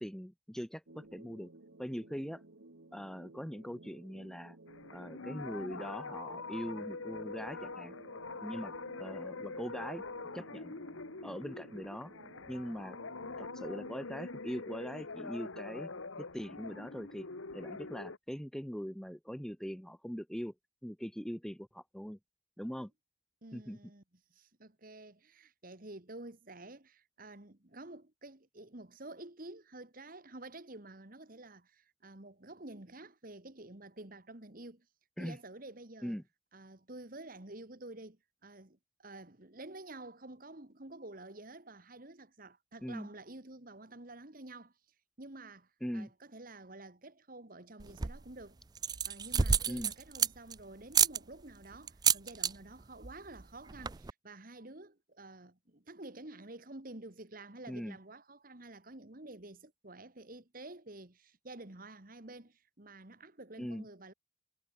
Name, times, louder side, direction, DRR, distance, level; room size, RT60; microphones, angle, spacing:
voice 1, 0.0-1.5 1.8-2.4 2.9-4.6 4.9-7.9 8.4-8.7 9.0-10.0 10.3-10.7 11.2-12.1 12.5-13.0 13.4-15.9 16.2-17.3 17.5-20.5 20.8-22.2 22.6-22.9 23.5-23.8 35.2-35.4 36.0-36.2 42.8-43.1 45.8-46.1 49.7-49.9 57.7-58.0 63.6-63.8, equal, 5° left, 0.9 m, -41 dB
sound 1, 0.9-13.9, right 2 dB, 75° right, 1.5 m, -56 dB
sound 2, 4.7-18.2, left 3 dB, 85° left, 1.5 m, -44 dB
voice 2, 23.4-24.0 24.3-34.9 35.2-36.2 36.5-44.7 45.2-48.6 49.0-64.1, right 2 dB, 45° right, 1.8 m, -50 dB
sound 3, 47.8-48.3 48.7-50.5 50.9-51.2 51.9-52.5 52.8-53.1 53.4-53.5 53.7-54.1, right 7 dB, 20° right, 0.4 m, -29 dB
head